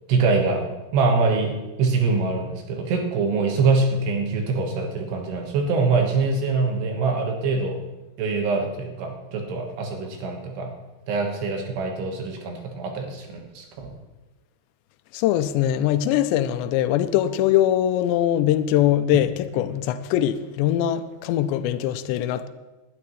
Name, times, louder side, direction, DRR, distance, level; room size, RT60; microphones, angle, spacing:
voice 1, 0.1-0.6 0.9-7.8 8.2-10.7 11.1-13.9, right 4 dB, 75° right, 3.5 m, -24 dB
voice 2, 15.1-22.5, left 11 dB, 90° left, 2.9 m, -22 dB
20.5 x 12.0 x 3.1 m
omnidirectional pair, 4.9 m